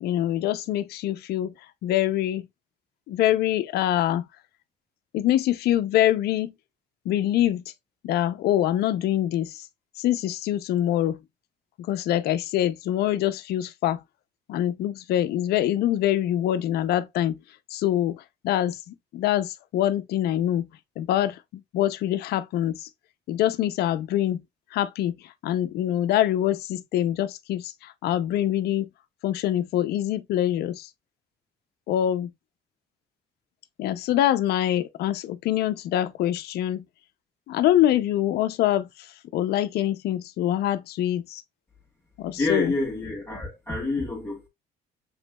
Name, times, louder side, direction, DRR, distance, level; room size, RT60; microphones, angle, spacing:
voice 1, 0.0-2.5 3.1-4.3 5.1-6.5 7.0-7.6 8.0-9.7 10.0-11.2 11.8-14.0 14.5-17.4 17.7-20.7 21.0-22.9 23.3-24.4 24.7-28.9 29.2-30.9 31.9-32.3 33.8-36.9 37.5-41.4 42.2-42.7, left 12 dB, 70° left, 0.6 m, -25 dB
voice 2, 42.4-44.5, left 2 dB, 15° left, 1.9 m, -28 dB
7.1 x 3.0 x 2.3 m
cardioid pair, 110°, 17 cm